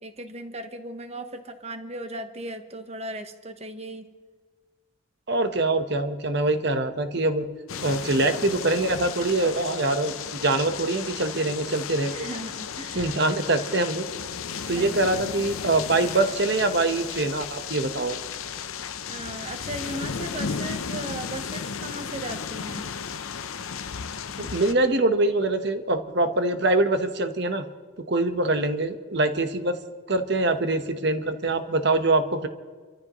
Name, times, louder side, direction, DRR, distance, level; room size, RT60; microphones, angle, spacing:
voice 1, 0.0-4.1 12.1-13.1 14.7-15.0 19.1-22.9, right 1 dB, 30° right, 7 dB, 1.1 m, -37 dB
voice 2, 5.3-7.5 7.8-10.1 10.4-12.3 12.9-14.1 14.7-18.2 24.4-27.6 28.1-29.8 30.1-32.5, right 2 dB, 55° right, 8 dB, 1.1 m, -24 dB
sound 1, 7.7-24.7, left 6 dB, 85° left, 0.7 m, -34 dB
30.0 x 14.0 x 3.1 m, 1.5 s
head